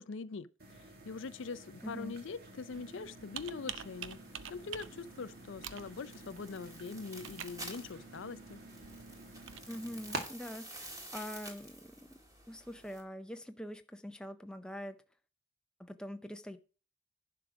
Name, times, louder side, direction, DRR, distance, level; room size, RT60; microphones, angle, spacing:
voice 1, 0.0-4.2 4.5-8.6, left 4 dB, 60° left, 0.5 m, -43 dB
sound 1, 0.6-10.2, right 2 dB, 45° right, 2.0 m, -49 dB
voice 2, 1.8-2.1 9.7-12.2 12.5-15.0 15.8-16.6, equal, 5° left, 0.5 m, -44 dB
Computer keyboard, 2.7-9.6, right 8 dB, 60° right, 0.6 m, -48 dB
sound 2, 3.8-13.0, right 1 dB, 15° right, 1.8 m, -51 dB
11.0 x 4.8 x 6.0 m
head